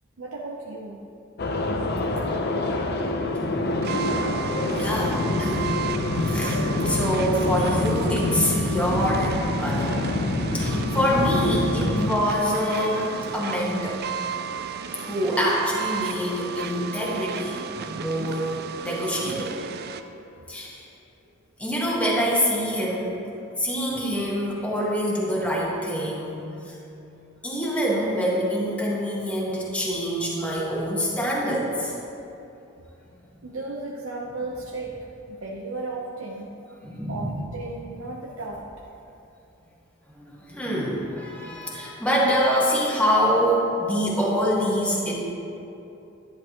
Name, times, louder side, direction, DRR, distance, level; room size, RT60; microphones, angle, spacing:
voice 1, 0.2-1.0 4.4-4.5 33.4-34.9 35.3-36.5 37.1-38.6, right 2 dB, 90° right, -3 dB, 0.8 m, -34 dB
sound 1, 1.4-12.1, left 2 dB, 50° left, 0.7 m, -26 dB
sound 2, 3.8-20.0, right 6 dB, 50° right, 0.4 m, -34 dB
voice 2, 4.8-5.7 6.2-10.0 10.5-14.0 15.0-19.6 20.5-20.8 21.6-23.2 23.6-26.8 27.4-31.9 36.8-37.5 40.1-45.1, equal, 5° left, -5 dB, 1.4 m, -25 dB
10.5 x 10.5 x 3.0 m, 2.8 s
head